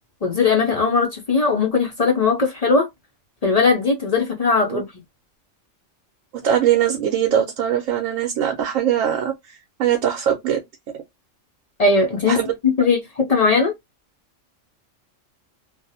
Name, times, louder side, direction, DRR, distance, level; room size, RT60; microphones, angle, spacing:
voice 1, 0.2-2.9 3.4-4.9 11.8-12.4 12.6-13.7, left 4 dB, 50° left, 0.4 m, -19 dB
voice 2, 6.4-10.6 12.3-12.5, right 10 dB, 90° right, 1.0 m, -21 dB
2.5 x 2.0 x 2.6 m
omnidirectional pair, 1.3 m